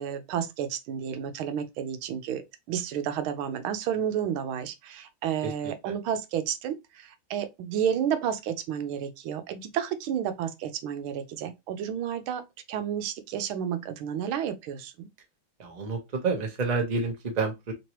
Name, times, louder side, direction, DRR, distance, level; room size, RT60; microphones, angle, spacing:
voice 1, 0.0-2.4 2.7-12.4 12.7-15.1, right 9 dB, 85° right, 1.5 m, -31 dB
voice 2, 15.6-17.7, right 4 dB, 30° right, 0.7 m, -29 dB
3.8 x 3.0 x 2.9 m
omnidirectional pair, 2.2 m